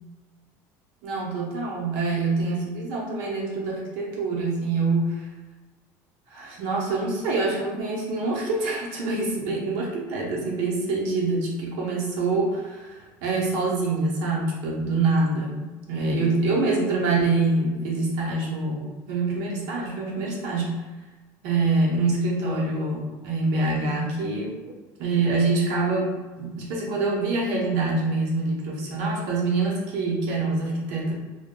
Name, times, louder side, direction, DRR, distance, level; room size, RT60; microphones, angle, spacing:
voice 1, 1.0-5.3 6.3-20.8 21.4-24.5 25.0-31.1, right 3 dB, 85° right, -3 dB, 0.8 m, -25 dB
2.2 x 2.2 x 3.6 m, 1.2 s
cardioid pair, 155°, 8 cm